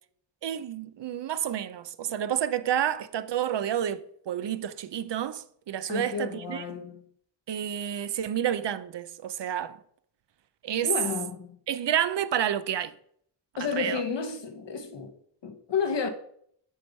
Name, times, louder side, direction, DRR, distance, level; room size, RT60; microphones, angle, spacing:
voice 1, 0.4-6.6 7.5-9.8 10.6-10.9 11.7-13.0 13.6-14.0, right 10 dB, 70° right, 0.6 m, -29 dB
voice 2, 5.9-7.0 10.8-11.6 13.6-15.1 15.4-16.1, left 6 dB, 75° left, 1.1 m, -31 dB
7.6 x 4.7 x 5.3 m
wide cardioid pair, 95°, 44 cm